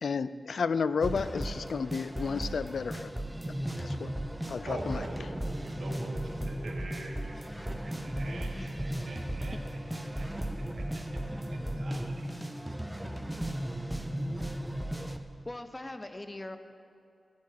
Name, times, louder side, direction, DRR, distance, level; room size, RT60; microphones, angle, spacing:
voice 1, 0.0-3.1 3.8-4.1 4.5-5.0, left 5 dB, 80° left, 15 dB, 0.3 m, -32 dB
sound 1, 1.0-15.2, right 1 dB, 10° right, 0.8 m, -36 dB
voice 2, 4.7-9.6 9.9-10.3 10.6-11.2 11.5-12.3, right 2 dB, 75° right, 0 dB, 1.8 m, -45 dB
voice 3, 15.4-16.6, left 1 dB, 30° left, 9 dB, 0.8 m, -41 dB
16.0 x 7.4 x 5.9 m, 2.5 s
cardioid pair, 50°, 0 cm